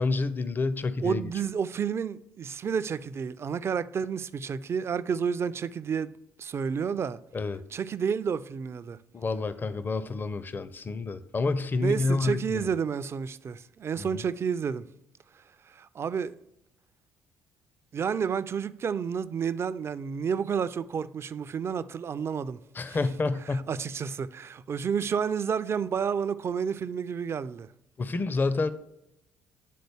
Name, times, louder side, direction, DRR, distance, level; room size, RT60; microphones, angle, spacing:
voice 1, 0.0-1.2 7.3-7.6 9.1-12.7 14.0-14.2 22.7-23.7 28.0-28.7, left 3 dB, 30° left, 0.5 m, -29 dB
voice 2, 1.0-6.1 6.4-7.2 7.7-9.0 11.8-14.8 15.7-16.4 17.9-22.6 22.9-23.0 23.7-27.7, right 6 dB, 40° right, 0.4 m, -30 dB
9.3 x 3.8 x 3.4 m
hypercardioid pair, 50°, 7 cm